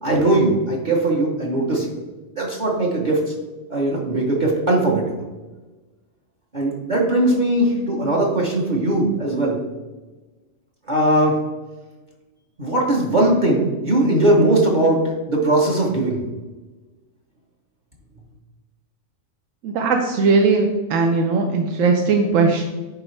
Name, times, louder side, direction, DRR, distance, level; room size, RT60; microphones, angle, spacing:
voice 1, 0.0-1.9 2.4-3.3 3.7-5.2 6.5-9.6 10.8-11.4 12.6-16.2, right 1 dB, 40° right, -1 dB, 1.0 m, -19 dB
voice 2, 19.6-22.6, right 4 dB, 90° right, 4 dB, 1.0 m, -18 dB
9.7 x 3.7 x 3.2 m, 1.2 s
omnidirectional pair, 1.3 m